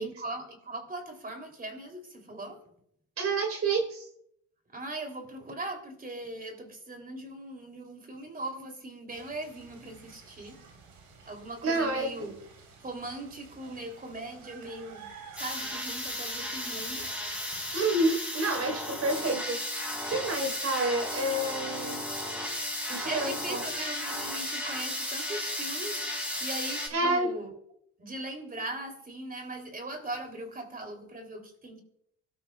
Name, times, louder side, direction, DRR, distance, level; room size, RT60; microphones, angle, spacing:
voice 1, 0.0-2.6 4.7-10.6 11.3-12.4 12.8-17.2 22.8-27.6 28.0-31.8, right 2 dB, 30° right, 4 dB, 3.4 m, -40 dB
voice 2, 3.2-4.1 11.6-12.1 17.7-22.0 22.9-23.6 26.9-27.3, right 2 dB, 55° right, 4 dB, 4.4 m, -29 dB
sound 1, 9.1-18.2, right 5 dB, 90° right, 4.3 m, -51 dB
sound 2, 15.4-26.9, left 1 dB, 5° right, 5.3 m, -34 dB
24.5 x 13.0 x 2.4 m, 0.72 s
cardioid pair, 90°, 30 cm